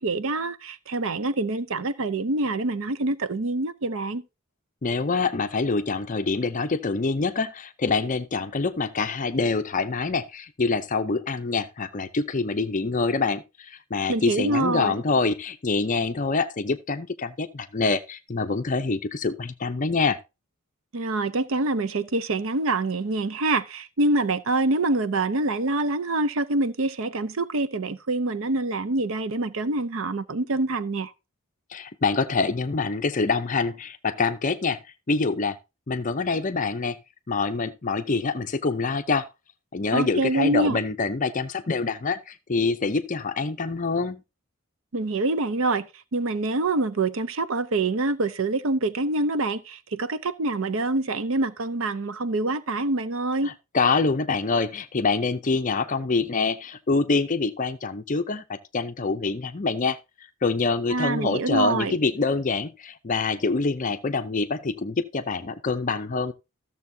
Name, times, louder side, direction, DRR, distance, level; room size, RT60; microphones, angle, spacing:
voice 1, 0.0-4.2 14.1-14.9 20.9-31.1 39.9-40.8 44.9-45.9 46.1-53.5 60.9-62.0, right 2 dB, 60° right, 0.6 m, -25 dB
voice 2, 4.8-20.2 31.7-34.8 35.1-35.6 35.9-37.0 37.3-39.3 39.7-44.2 53.4-60.0 60.4-66.3, left 4 dB, 35° left, 0.5 m, -25 dB
14.0 x 6.9 x 2.7 m
head